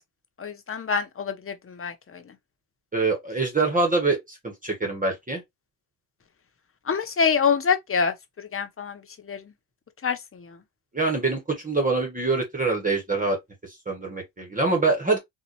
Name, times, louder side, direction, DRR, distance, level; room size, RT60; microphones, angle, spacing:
voice 1, 0.4-2.2 6.9-9.0 9.3-9.4 10.0-10.6, left 6 dB, 30° left, 0.9 m, -26 dB
voice 2, 2.9-5.4 10.9-13.4 13.9-15.2, right 3 dB, 15° right, 1.3 m, -24 dB
4.0 x 2.5 x 2.9 m
supercardioid pair, 65°, 47 cm